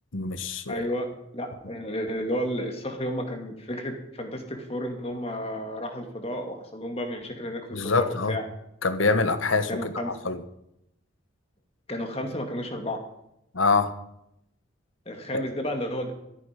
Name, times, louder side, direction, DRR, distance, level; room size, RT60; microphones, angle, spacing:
voice 1, 0.1-0.9 7.7-8.4 8.8-10.4 13.5-13.9 15.3-15.4, left 3 dB, 80° left, 10 dB, 1.3 m, -25 dB
voice 2, 0.7-1.1 1.3-8.4 9.7-10.1 11.9-13.0 15.1-16.1, equal, 30° left, 4 dB, 2.3 m, -32 dB
14.5 x 14.0 x 5.3 m, 0.81 s
head